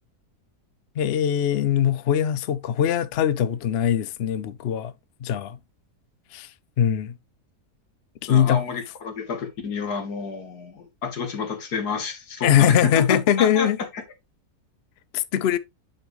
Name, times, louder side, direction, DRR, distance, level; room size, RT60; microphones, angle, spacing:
voice 1, 1.0-4.9 5.2-5.6 6.3-6.5 6.8-7.1 8.2-8.6 12.4-13.8 15.1-15.6, left 9 dB, 60° left, 0.7 m, -21 dB
voice 2, 8.3-13.7, left 5 dB, 75° left, 2.1 m, -30 dB
8.6 x 5.2 x 3.1 m
omnidirectional pair, 1.7 m